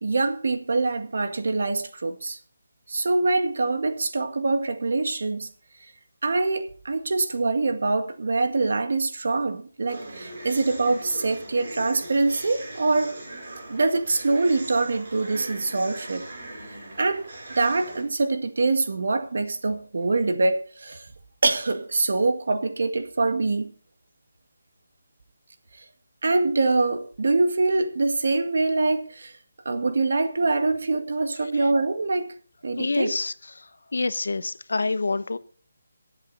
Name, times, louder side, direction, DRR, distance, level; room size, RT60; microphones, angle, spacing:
voice 1, 0.0-2.4 2.9-5.5 6.2-13.1 13.7-16.3 17.0-21.0 21.4-23.7 26.2-29.3 29.7-32.3 32.6-33.1, right 3 dB, 60° right, 1.8 m, -24 dB
sound 1, 9.9-18.0, right 2 dB, 40° right, 7.6 m, -40 dB
voice 2, 32.8-33.6 33.9-35.4, left 3 dB, 75° left, 0.9 m, -27 dB
22.0 x 8.1 x 4.1 m
hypercardioid pair, 175°, 0 cm